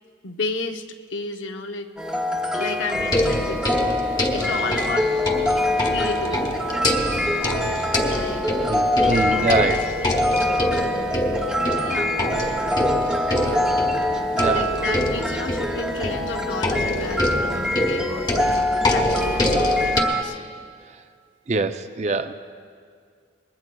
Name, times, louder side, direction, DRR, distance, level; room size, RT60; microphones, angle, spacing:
voice 1, 0.2-0.8 1.1-1.9 2.5-4.0 4.3-5.1 5.9-6.5 8.0-8.5 9.1-11.0 11.7-12.2 13.4-13.5 14.2-20.4, left 3 dB, 85° left, 5 dB, 0.8 m, -33 dB
sound 1, 2.0-20.2, left 1 dB, 5° right, 0.7 m, -24 dB
sound 2, 2.9-20.0, left 1 dB, 20° left, 0.9 m, -26 dB
voice 2, 8.7-9.9 14.3-14.7 21.5-22.3, right 3 dB, 35° right, 10 dB, 0.4 m, -24 dB
23.5 x 20.0 x 2.3 m, 2.1 s
head